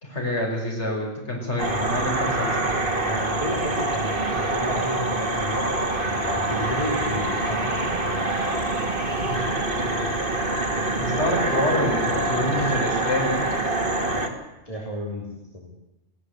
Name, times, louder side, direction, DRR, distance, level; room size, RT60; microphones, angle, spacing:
voice 1, 0.0-2.7 3.6-3.7 9.2-9.4 10.6-13.5, left 1 dB, 80° left, -1 dB, 5.7 m, -27 dB
sound 1, 1.6-14.3, right 2 dB, 50° right, 3.0 m, -25 dB
voice 2, 3.0-5.6 6.2-7.9 14.7-15.7, equal, 30° left, 0 dB, 3.6 m, -32 dB
25.0 x 17.0 x 8.1 m, 0.99 s
omnidirectional pair, 1.2 m